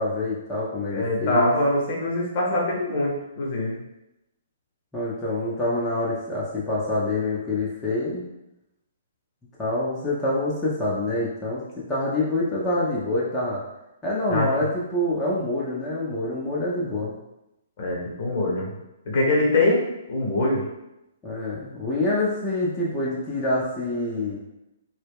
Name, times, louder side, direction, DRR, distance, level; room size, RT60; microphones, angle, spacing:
voice 1, 0.0-1.5 4.9-8.2 9.6-13.6 14.0-17.1 21.2-24.4, left 2 dB, 15° left, -7 dB, 0.5 m, -26 dB
voice 2, 0.9-3.8 14.3-14.6 17.8-18.8 19.0-20.7, left 2 dB, 45° left, -3 dB, 0.8 m, -23 dB
2.1 x 2.0 x 3.4 m, 0.90 s
figure-of-eight pair, 120°, 0 cm